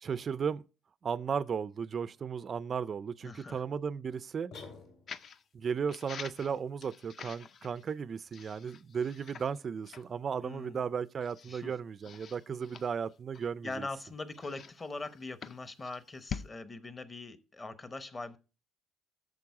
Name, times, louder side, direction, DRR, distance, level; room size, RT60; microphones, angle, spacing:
voice 1, 0.0-0.6 1.0-4.5 5.5-13.9, right 6 dB, 35° right, 0.3 m, -35 dB
voice 2, 3.2-3.6 10.4-10.8 11.5-11.7 13.6-18.4, left 3 dB, 20° left, 0.8 m, -42 dB
sound 1, 4.5-5.4, left 4 dB, 65° left, 2.8 m, -49 dB
sound 2, 5.1-5.4 5.9-7.9 8.3-9.6 9.9-10.1 10.6-10.7 11.2-11.6 12.0-13.7 14.3-16.5, left 7 dB, 45° left, 0.4 m, -46 dB
8.5 x 6.5 x 4.7 m
cardioid pair, 130°, 0 cm